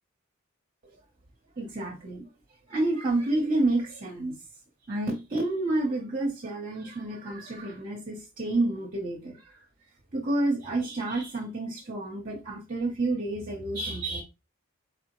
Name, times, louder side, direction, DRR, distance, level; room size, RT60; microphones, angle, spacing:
voice 1, 1.6-2.3 2.7-4.3 4.9-9.5 10.1-14.2, right 2 dB, 40° right, 0.8 m, -29 dB
4.3 x 3.4 x 3.0 m
head